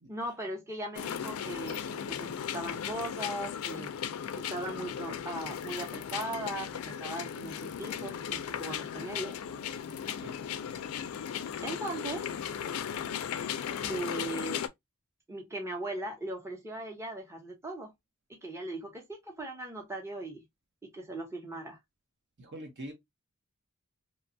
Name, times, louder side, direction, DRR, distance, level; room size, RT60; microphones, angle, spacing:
voice 1, 0.1-3.9 4.3-9.4 11.6-12.3 13.8-14.7 15.3-17.9 18.4-20.4 20.8-21.8, right 1 dB, 15° right, 0.8 m, -39 dB
sound 1, 1.0-14.7, left 8 dB, 85° left, 0.4 m, -36 dB
voice 2, 22.4-22.9, right 1 dB, 55° right, 0.9 m, -43 dB
2.9 x 2.2 x 2.5 m
head